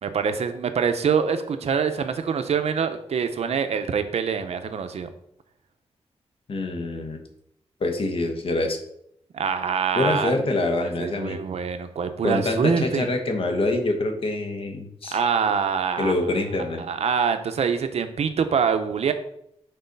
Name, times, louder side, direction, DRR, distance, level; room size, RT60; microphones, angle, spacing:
voice 1, 0.0-5.1 9.3-10.6 11.0-13.1 15.1-16.1 16.8-19.1, right 6 dB, 70° right, 8 dB, 0.7 m, -25 dB
voice 2, 6.5-7.2 7.8-8.8 9.9-11.4 12.2-15.2 16.0-16.8, left 2 dB, 55° left, 4 dB, 1.1 m, -25 dB
6.7 x 4.1 x 5.3 m, 0.74 s
wide cardioid pair, 135°, 11 cm